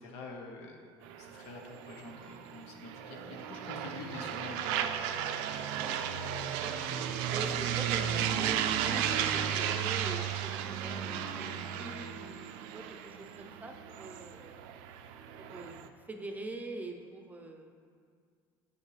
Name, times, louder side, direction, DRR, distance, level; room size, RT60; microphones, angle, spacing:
voice 1, 0.0-0.8 1.2-4.7, left 3 dB, 85° left, 2 dB, 1.0 m, -46 dB
sound 1, 1.0-15.9, right 9 dB, 85° right, 0.4 m, -34 dB
voice 2, 6.6-7.0 7.3-14.6 15.4-15.8 16.0-17.7, right 2 dB, 15° right, 3 dB, 0.7 m, -44 dB
7.2 x 6.7 x 3.3 m, 2.2 s
supercardioid pair, 105°, 10 cm